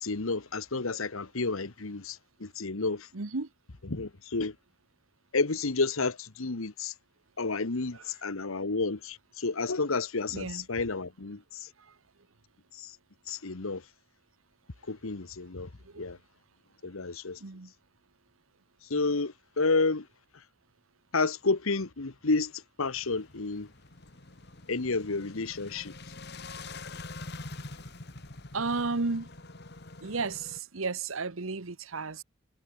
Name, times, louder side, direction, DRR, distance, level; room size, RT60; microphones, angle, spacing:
voice 1, 0.0-3.1 3.8-4.5 5.3-6.9 7.4-11.7 12.7-12.9 13.3-13.8 14.9-15.7 16.0-16.2 16.8-17.4 18.9-20.1 21.1-23.7 24.7-25.9, left 3 dB, 80° left, 1.3 m, -30 dB
voice 2, 3.1-3.5 10.3-10.6 15.8-16.1 17.4-17.7 28.5-29.3 30.0-32.2, right 4 dB, 75° right, 1.2 m, -33 dB
sound 1, 22.8-30.6, left 3 dB, 50° left, 2.0 m, -45 dB
head